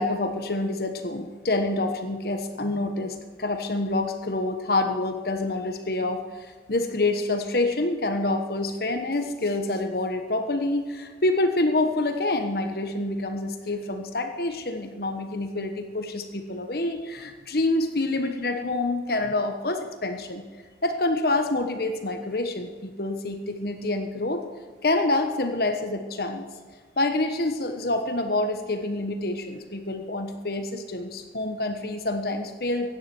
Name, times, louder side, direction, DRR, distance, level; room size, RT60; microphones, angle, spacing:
voice 1, 0.0-20.4 20.8-24.4 24.8-26.5 27.0-32.9, left 2 dB, 55° left, 6 dB, 1.2 m, -27 dB
16.0 x 10.5 x 6.2 m, 1.5 s
head